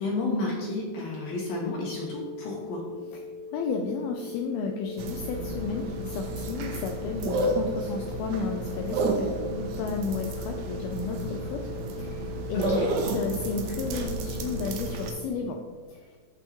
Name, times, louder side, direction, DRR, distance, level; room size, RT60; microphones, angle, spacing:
voice 1, 0.0-2.8 12.5-13.0, left 2 dB, 65° left, -2 dB, 2.7 m, -31 dB
sound 1, 1.0-15.2, left 3 dB, 35° right, 2.1 m, -41 dB
voice 2, 3.5-11.6 11.9-15.6 15.9-16.0, left 5 dB, 85° left, 3 dB, 2.2 m, -33 dB
sound 2, 5.0-15.1, right 2 dB, 75° right, 2.8 m, -32 dB
14.0 x 5.5 x 3.1 m, 1.5 s
omnidirectional pair, 5.1 m